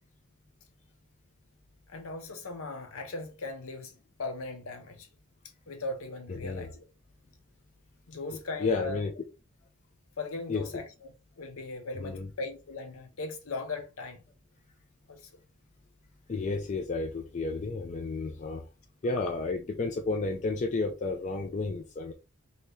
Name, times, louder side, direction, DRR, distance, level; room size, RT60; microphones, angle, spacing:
voice 1, 1.9-3.9 4.2-5.1 5.7-6.8 8.1-9.0 10.2-14.2 15.1-15.3, left 3 dB, 65° left, 0.8 m, -38 dB
voice 2, 6.3-6.7 8.6-9.1 10.5-10.6 12.0-12.3 16.3-18.6 19.0-22.1, left 3 dB, 30° left, 0.4 m, -31 dB
2.8 x 2.7 x 3.3 m
head